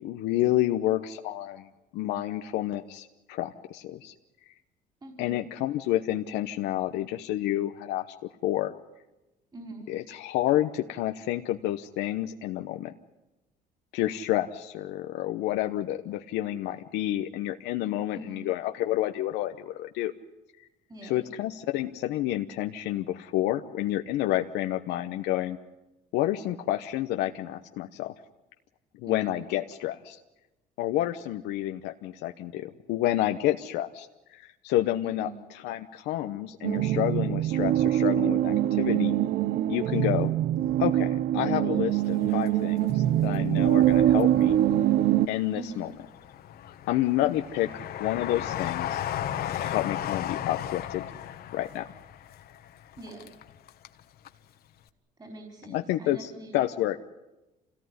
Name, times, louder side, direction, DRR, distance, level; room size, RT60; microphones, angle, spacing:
voice 1, 0.0-1.7 1.9-4.1 5.2-8.1 8.4-8.7 9.9-12.9 13.9-20.1 21.0-25.6 26.1-28.1 29.0-30.2 30.8-39.2 39.7-40.3 40.8-44.6 45.3-45.9 46.9-47.7 48.0-49.0 49.5-51.0 51.5-51.9 55.7-57.0, left 14 dB, 90° left, 6 dB, 1.0 m, -29 dB
voice 2, 5.0-5.4 9.5-9.9 18.1-18.4 20.9-21.3 29.0-29.4 35.0-35.4 45.5-45.9 53.0-53.3 55.2-56.6, right 2 dB, 25° right, 3 dB, 4.2 m, -43 dB
sound 1, 36.6-45.3, right 12 dB, 75° right, 0.8 m, -24 dB
Train, 42.0-43.3 43.7-44.7 45.2-54.0 54.2-54.3, left 11 dB, 65° left, 1.5 m, -35 dB
26.5 x 18.0 x 9.6 m, 1.0 s
cardioid pair, 110°, 17 cm